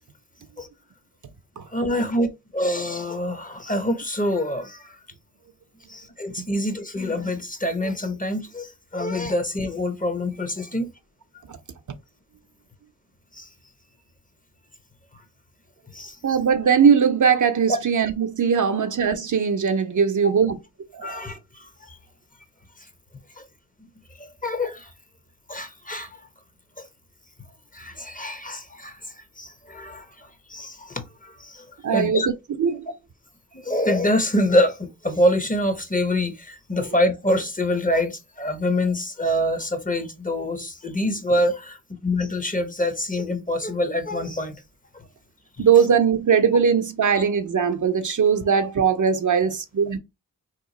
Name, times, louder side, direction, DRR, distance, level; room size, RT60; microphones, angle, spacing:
voice 1, 1.7-5.0 5.9-10.9 13.3-13.5 15.9-16.2 17.7-17.8 21.0-22.0 23.4-23.5 24.2-24.9 25.5-26.2 26.8-26.9 27.7-29.0 29.4-32.3 33.5-44.6 44.9-45.0, left 1 dB, 20° left, 0.7 m, -25 dB
voice 2, 16.2-20.6 20.9-21.2 31.8-32.3 32.6-32.9 45.6-50.0, right 7 dB, 50° right, 0.5 m, -20 dB
2.9 x 2.3 x 3.8 m
cardioid pair, 45°, 40 cm